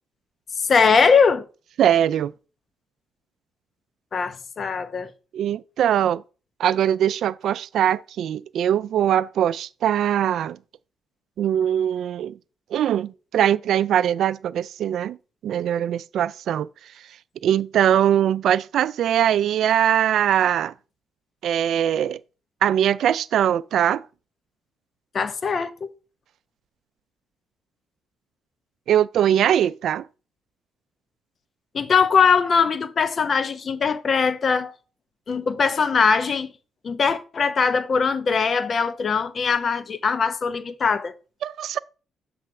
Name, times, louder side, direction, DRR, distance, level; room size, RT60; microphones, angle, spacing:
voice 1, 0.6-1.4 4.1-5.1 25.1-25.9 31.7-34.8 35.3-36.5 36.8-41.1, left 5 dB, 45° left, 0.7 m, -21 dB
voice 2, 1.8-2.3 5.3-6.2 6.6-10.6 11.4-12.3 12.7-15.2 15.4-16.7 17.4-20.7 21.4-22.2 22.6-24.0 28.9-30.0 41.4-41.8, right 10 dB, 70° right, 0.3 m, -21 dB
7.3 x 3.2 x 5.8 m
cardioid pair, 90°, 0 cm